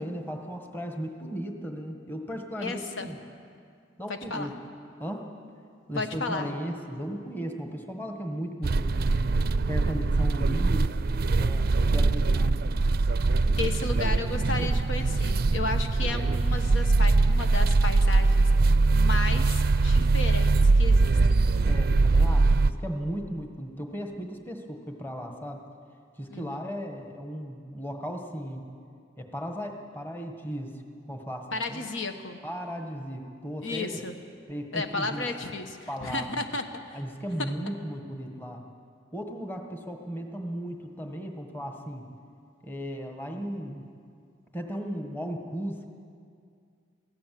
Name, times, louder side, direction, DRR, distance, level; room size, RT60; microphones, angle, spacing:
voice 1, 0.0-3.2 4.0-4.5 5.0-5.3 5.9-9.3 9.7-10.9 11.4-12.7 21.6-25.6 26.2-28.6 29.2-30.8 31.1-31.9 32.4-34.0 34.5-35.3 35.9-36.3 36.9-38.6 39.1-42.0 42.6-43.9 44.5-45.9, equal, 10° left, 3 dB, 1.5 m, -36 dB
voice 2, 2.6-3.1 4.1-4.5 5.9-6.5 13.6-21.4 26.3-26.6 31.5-32.4 33.6-34.1 34.7-37.0, left 3 dB, 70° left, 6 dB, 1.3 m, -34 dB
sound 1, 8.6-22.7, right 3 dB, 50° right, 0.5 m, -22 dB
22.5 x 15.5 x 7.7 m, 2.3 s
head